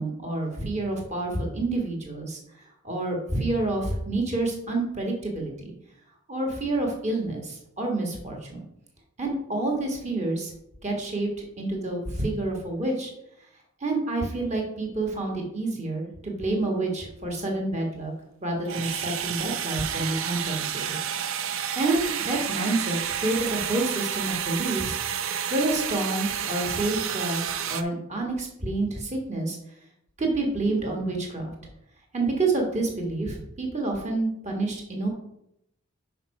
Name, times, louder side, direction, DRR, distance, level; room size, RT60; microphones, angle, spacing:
voice 1, 0.0-2.4 2.8-5.7 6.3-8.6 9.2-10.5 10.8-11.3 11.6-13.1 13.8-18.1 18.4-21.0 21.7-25.0 25.5-27.4 27.7-29.6 30.2-31.5 32.1-35.1, right 2 dB, 30° right, 0 dB, 1.5 m, -28 dB
sound 1, 18.6-27.8, right 8 dB, 65° right, 0.5 m, -30 dB
5.8 x 4.7 x 5.3 m, 0.79 s
head